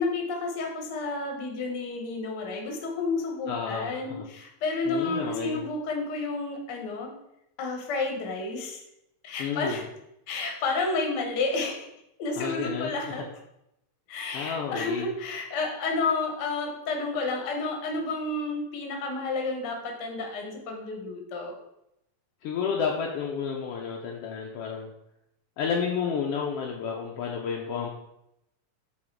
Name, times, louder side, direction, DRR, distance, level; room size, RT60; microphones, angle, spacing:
voice 1, 0.0-7.2 7.6-8.8 9.2-9.8 10.3-11.9 12.2-13.3 14.1-21.5, left 3 dB, 60° left, 2 dB, 1.1 m, -31 dB
voice 2, 3.5-4.3 4.9-5.6 9.4-9.8 12.4-12.9 14.3-15.1 22.4-24.9 25.6-27.9, left 6 dB, 85° left, 0 dB, 1.3 m, -31 dB
6.3 x 3.5 x 4.5 m, 0.83 s
omnidirectional pair, 3.4 m